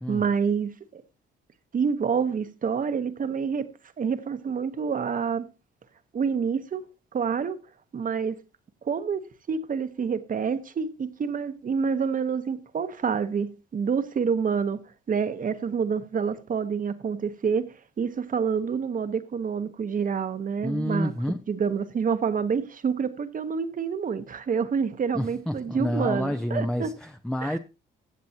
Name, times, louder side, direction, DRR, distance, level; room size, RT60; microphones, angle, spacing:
voice 1, 0.1-1.0 1.7-3.7 4.0-5.5 6.1-6.8 7.1-7.6 7.9-8.4 8.8-14.8 15.1-17.7 18.0-21.1 21.5-26.9 27.4-27.6, right 6 dB, 45° right, 1.0 m, -27 dB
voice 2, 20.6-21.4 25.1-27.6, left 1 dB, 5° left, 0.6 m, -29 dB
15.5 x 7.5 x 2.9 m
cardioid pair, 90°, 20 cm